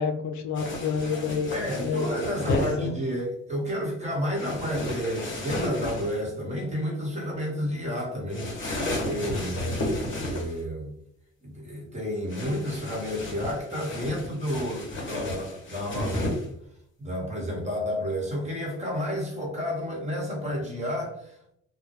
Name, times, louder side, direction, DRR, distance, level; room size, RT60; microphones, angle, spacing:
voice 1, 0.0-1.5 1.8-2.2 2.4-2.9 9.6-9.8, left 5 dB, 70° left, 5 dB, 0.4 m, -29 dB
sound 1, 0.6-2.8 4.3-6.2 8.3-10.6 12.3-16.5, left 1 dB, 40° left, 1.0 m, -33 dB
voice 2, 1.5-10.9 11.4-16.3 17.0-21.4, equal, 25° right, -2 dB, 1.1 m, -31 dB
2.1 x 2.1 x 2.9 m, 0.73 s
cardioid pair, 90°, 30 cm